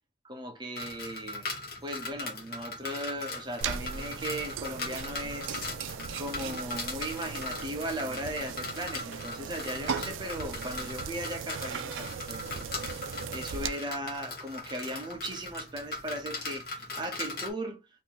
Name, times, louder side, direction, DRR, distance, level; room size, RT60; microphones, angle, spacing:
voice 1, 0.2-1.5 1.8-5.6 6.2-12.6 13.0-17.8, right 1 dB, 25° right, 0.6 m, -37 dB
sound 1, 0.8-17.5, left 3 dB, 50° left, 1.0 m, -39 dB
sound 2, 3.6-13.7, right 6 dB, 90° right, 0.4 m, -38 dB
2.8 x 2.7 x 3.8 m
head